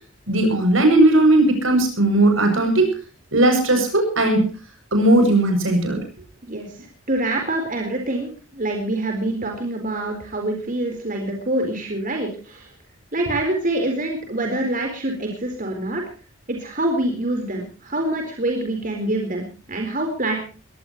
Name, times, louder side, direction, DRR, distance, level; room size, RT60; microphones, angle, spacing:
voice 1, 0.3-2.9 3.3-4.5 4.9-6.0, right 1 dB, 75° right, 5 dB, 7.8 m, -17 dB
voice 2, 6.4-12.7 13.1-16.0 16.5-20.4, right 1 dB, 40° right, 2 dB, 4.2 m, -25 dB
22.0 x 18.5 x 3.1 m, 0.37 s
head